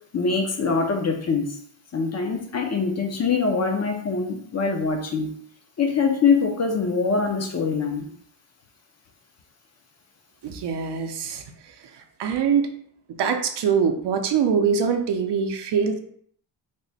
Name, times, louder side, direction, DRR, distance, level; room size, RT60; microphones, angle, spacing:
voice 1, 0.1-1.6 1.9-5.3 5.8-8.1, left 5 dB, 35° left, 3 dB, 0.5 m, -23 dB
voice 2, 10.4-11.4 12.2-12.7 13.2-16.0, right 6 dB, 65° right, 5 dB, 0.6 m, -23 dB
3.3 x 2.1 x 4.0 m, 0.62 s
wide cardioid pair, 135°, 45 cm